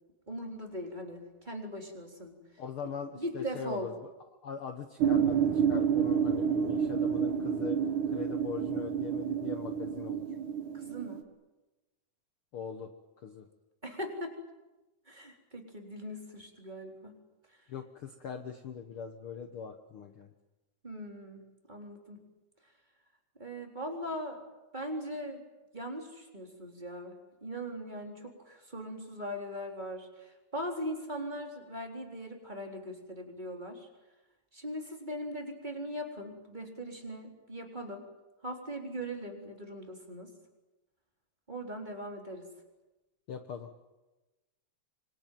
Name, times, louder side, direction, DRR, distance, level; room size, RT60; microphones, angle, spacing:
voice 1, 0.3-2.4 3.2-3.9 10.7-11.2 13.8-14.3 15.1-17.2 20.8-21.4 21.7-22.2 23.4-24.4 24.7-25.4 25.7-27.1 27.4-33.9 34.5-38.0 38.4-40.3 41.5-42.5, equal, 15° right, 1 dB, 3.7 m, -40 dB
voice 2, 2.6-3.9 4.4-7.8 8.1-10.3 12.5-12.9 13.2-13.5 17.7-20.3 43.3-43.7, left 6 dB, 55° left, 7 dB, 1.8 m, -41 dB
sound 1, 5.0-11.2, right 7 dB, 80° right, 2.9 m, -29 dB
26.0 x 22.5 x 9.2 m, 1.1 s
omnidirectional pair, 3.4 m